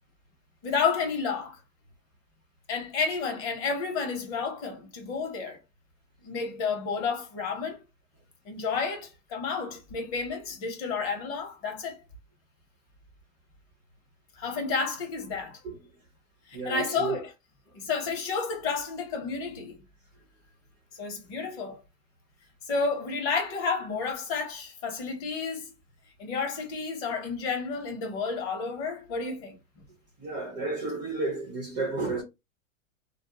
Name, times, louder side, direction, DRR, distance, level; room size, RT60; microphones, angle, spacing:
voice 1, 0.6-1.6 2.7-5.6 6.2-7.8 8.4-12.0 14.4-15.6 16.5-17.3 17.7-19.8 20.9-21.8 22.6-25.7 26.2-29.6, left 5 dB, 35° left, 1.0 m, -31 dB
voice 2, 16.5-17.2 30.2-32.2, right 3 dB, 10° right, 0.3 m, -32 dB
2.5 x 2.1 x 2.9 m
supercardioid pair, 145°, 40 cm